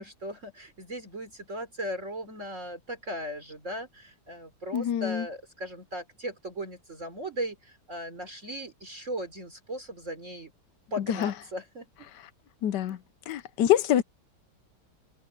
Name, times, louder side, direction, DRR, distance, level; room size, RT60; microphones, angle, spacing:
voice 1, 0.0-10.5 10.9-12.1 12.9-13.0, equal, 45° right, 3.9 m, -37 dB
voice 2, 4.7-5.2 11.1-11.3 12.6-13.0 13.3-14.0, left 11 dB, 80° left, 1.4 m, -25 dB
omnidirectional pair, 1.8 m